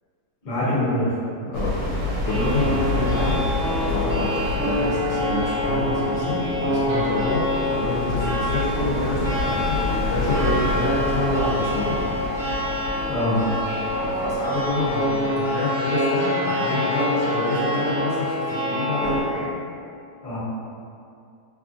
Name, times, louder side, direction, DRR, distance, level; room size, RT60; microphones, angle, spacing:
voice 1, 0.4-1.1 2.6-2.7 13.1-13.5 20.2-20.4, left 1 dB, 40° left, -10 dB, 0.8 m, -24 dB
sound 1, 1.5-15.5, left 2 dB, 85° right, 1.4 m, -29 dB
voice 2, 2.2-12.0 14.0-19.5, left 2 dB, 75° left, -7 dB, 1.1 m, -27 dB
sound 2, 2.2-19.2, left 1 dB, 55° right, 0.8 m, -26 dB
3.0 x 2.4 x 2.5 m, 2.4 s
omnidirectional pair, 2.0 m